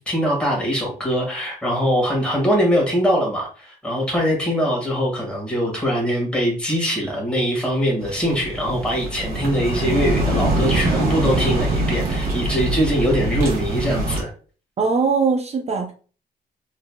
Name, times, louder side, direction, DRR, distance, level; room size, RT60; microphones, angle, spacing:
voice 1, 0.0-14.3, equal, 5° left, -3 dB, 1.8 m, -22 dB
sound 1, 8.0-14.2, right 2 dB, 70° right, 1.6 m, -23 dB
voice 2, 14.8-15.9, right 5 dB, 40° right, 2 dB, 0.5 m, -20 dB
3.9 x 3.2 x 2.3 m, 0.39 s
cardioid pair, 115°, 16 cm